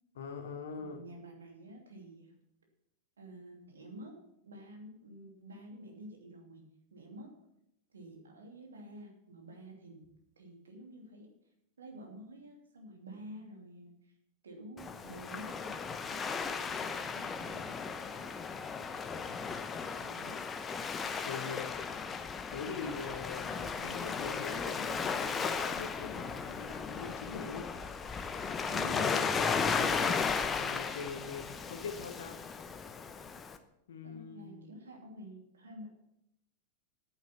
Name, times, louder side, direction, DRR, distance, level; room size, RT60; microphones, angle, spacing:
voice 1, 0.1-1.0 21.2-21.7 22.5-27.7 28.8-32.4 33.9-34.7, left 5 dB, 60° left, 5 dB, 1.3 m, -43 dB
voice 2, 0.8-2.3 3.2-4.2 4.4-6.6 6.9-7.3 7.9-10.1 10.4-11.3 11.8-13.9 14.4-17.8 18.1-19.0 19.2-20.4 28.7-30.1 34.0-35.9, right 1 dB, 70° right, 2 dB, 2.8 m, -50 dB
Waves surf, 14.8-33.6, left 5 dB, 20° left, 0.9 m, -35 dB
10.5 x 9.2 x 5.9 m, 0.79 s
figure-of-eight pair, 90°, 0 cm